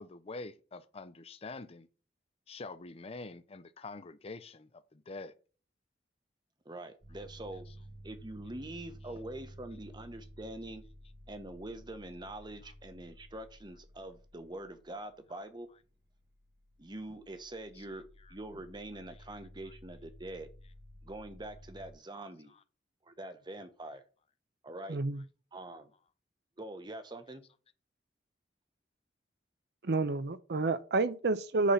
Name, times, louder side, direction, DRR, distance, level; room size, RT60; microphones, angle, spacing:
voice 1, 0.0-1.9 2.5-5.3 7.7-7.8 17.7-17.9 18.2-18.3 22.5-22.6, left 3 dB, 35° left, 0.5 m, -46 dB
voice 2, 6.6-7.6 8.0-10.8 11.3-15.7 16.8-18.0 18.3-20.5 21.0-22.5 23.0-24.0 24.6-25.0 25.5-25.9 26.6-27.4, right 1 dB, 25° right, 1.0 m, -44 dB
sound 1, 7.0-21.9, equal, 80° right, 1.7 m, -54 dB
voice 3, 24.9-25.2 29.8-31.7, right 3 dB, 65° right, 0.6 m, -29 dB
8.3 x 4.0 x 5.7 m
head